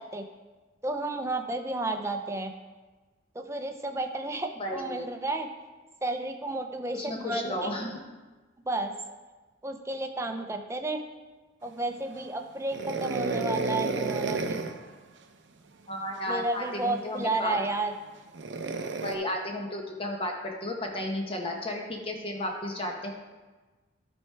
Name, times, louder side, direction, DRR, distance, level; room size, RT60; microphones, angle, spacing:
voice 1, 0.8-2.5 3.4-5.5 6.0-7.7 8.7-8.9 9.6-11.0 11.6-14.6 16.3-17.9, right 2 dB, 15° right, 5 dB, 0.6 m, -32 dB
voice 2, 4.6-5.1 6.9-8.0 15.9-17.6 19.0-23.1, left 1 dB, 30° left, 1 dB, 1.1 m, -33 dB
sound 1, 12.7-14.8 16.6-16.8 18.3-19.1, right 3 dB, 70° right, 0.6 m, -31 dB
12.5 x 4.5 x 4.6 m, 1.3 s
head